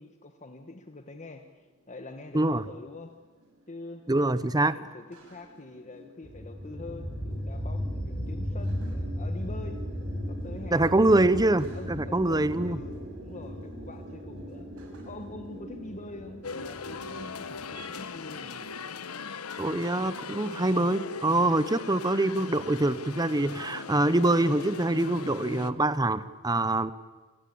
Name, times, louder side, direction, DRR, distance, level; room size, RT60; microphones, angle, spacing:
voice 1, 0.0-3.1 3.7-4.0 4.7-9.8 10.3-14.7 15.0-18.6, left 2 dB, 35° left, 6 dB, 1.3 m, -45 dB
sound 1, 1.5-17.9, right 1 dB, 75° right, 7.1 m, -46 dB
voice 2, 4.1-4.7 10.7-12.8 19.6-26.9, right 2 dB, 20° right, 15 dB, 0.8 m, -25 dB
sound 2, 6.2-17.8, equal, 5° left, 3.7 m, -36 dB
sound 3, 16.4-25.7, left 4 dB, 90° left, 1.2 m, -39 dB
27.5 x 19.0 x 8.6 m, 1.3 s
head